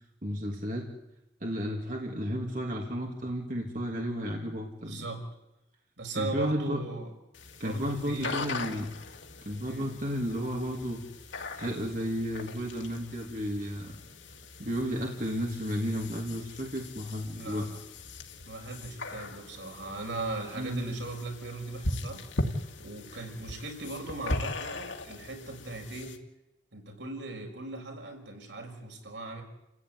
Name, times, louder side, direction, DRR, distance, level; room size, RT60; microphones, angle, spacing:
voice 1, 0.2-0.9 1.4-5.1 6.1-6.8 7.6-8.9 9.4-11.0 11.5-14.0 14.6-17.7 20.6-20.8, equal, 45° right, 0 dB, 3.0 m, -33 dB
voice 2, 4.8-5.2 6.0-7.1 7.6-8.5 9.6-10.1 17.4-17.8 18.5-26.2 26.7-29.4, right 2 dB, 75° right, 2 dB, 6.3 m, -39 dB
sound 1, 7.3-26.2, left 2 dB, 90° left, 2.6 m, -40 dB
30.0 x 16.0 x 9.7 m, 0.91 s
head